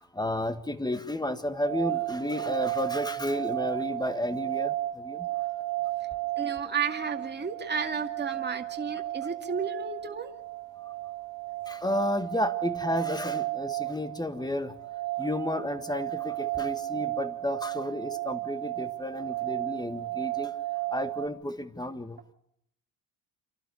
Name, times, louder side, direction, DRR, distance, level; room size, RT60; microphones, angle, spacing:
voice 1, 0.0-5.3 11.7-14.7 15.2-20.5 20.9-22.2, left 1 dB, 10° left, 11 dB, 1.7 m, -32 dB
sound 1, 1.6-21.3, right 17 dB, 85° right, 1.6 m, -34 dB
voice 2, 6.4-10.3, right 5 dB, 25° right, 3 dB, 2.2 m, -32 dB
28.0 x 12.0 x 9.6 m, 0.74 s
supercardioid pair, 80°, 45 cm